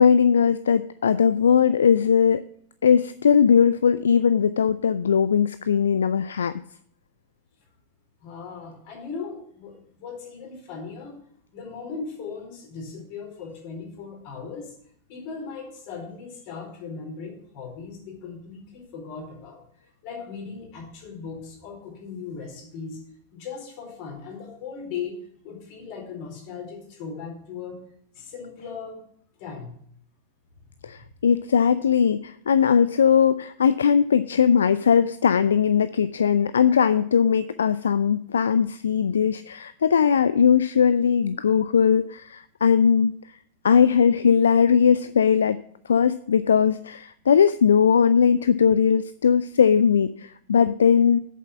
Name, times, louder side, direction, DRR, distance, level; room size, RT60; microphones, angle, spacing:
voice 1, 0.0-2.4 2.8-6.6 30.8-43.1 43.6-45.6 45.9-51.2, left 7 dB, 70° left, 15 dB, 0.3 m, -19 dB
voice 2, 8.2-11.2 11.5-14.7 15.1-19.6 20.0-23.0 23.3-27.8 28.1-29.0 29.4-29.8 30.8-30.9, left 5 dB, 45° left, 0 dB, 4.2 m, -38 dB
8.3 x 7.2 x 7.1 m, 0.65 s
figure-of-eight pair, 90°, 0 cm